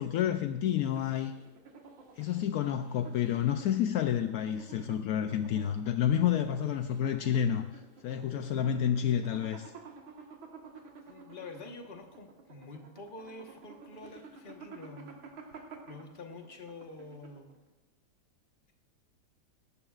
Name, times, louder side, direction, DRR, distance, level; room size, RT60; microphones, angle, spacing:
voice 1, 0.0-1.3 2.2-9.7, left 9 dB, 80° left, 8 dB, 0.8 m, -29 dB
sound 1, 0.8-17.6, right 4 dB, 85° right, 2.3 m, -51 dB
voice 2, 11.0-15.2 15.9-17.5, left 3 dB, 30° left, 3 dB, 1.1 m, -47 dB
17.5 x 14.0 x 2.4 m, 1.1 s
omnidirectional pair, 2.1 m